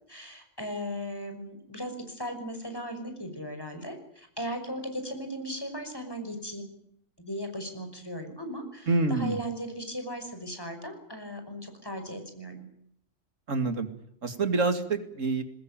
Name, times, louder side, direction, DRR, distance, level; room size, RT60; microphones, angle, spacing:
voice 1, 0.1-6.7 7.2-12.7, equal, 20° left, 6 dB, 5.9 m, -37 dB
voice 2, 8.9-9.4 13.5-13.9 14.2-15.4, right 3 dB, 90° right, 9 dB, 2.8 m, -27 dB
22.0 x 20.5 x 9.0 m, 0.69 s
omnidirectional pair, 1.3 m